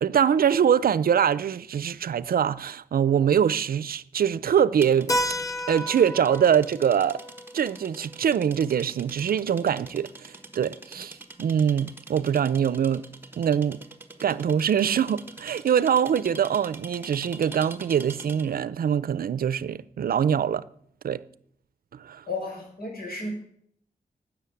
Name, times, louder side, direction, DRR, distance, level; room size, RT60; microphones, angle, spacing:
voice 1, 0.0-5.1 5.7-7.2 7.5-13.1 13.4-13.8 14.2-20.6 21.0-21.2 21.9-22.2, right 8 dB, 70° right, 0.5 m, -23 dB
sound 1, 4.8-18.6, right 3 dB, 15° right, 1.4 m, -45 dB
Keyboard (musical), 5.1-9.5, equal, 20° left, 0.8 m, -33 dB
voice 2, 22.3-23.3, left 3 dB, 75° left, 4.9 m, -33 dB
12.5 x 8.1 x 8.4 m
wide cardioid pair, 150°, 16 cm